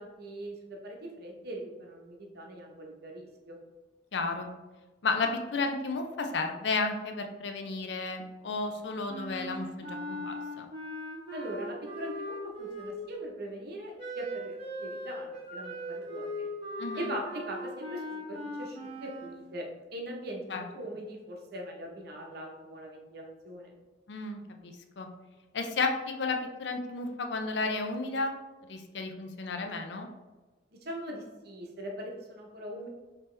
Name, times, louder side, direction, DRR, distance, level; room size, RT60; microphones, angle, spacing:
voice 1, 0.0-3.6 11.3-16.5 17.0-23.7 30.8-32.9, right 1 dB, 60° right, 0 dB, 0.9 m, -41 dB
voice 2, 4.1-4.5 5.0-10.7 16.8-17.1 20.5-20.6 24.1-25.1 25.5-28.3 28.7-30.1, left 3 dB, 70° left, 4 dB, 0.5 m, -33 dB
Wind instrument woodwind instrument, 9.1-13.2 14.0-19.4, equal, 30° right, 1.3 m, -39 dB
5.2 x 2.9 x 3.2 m, 1.2 s
head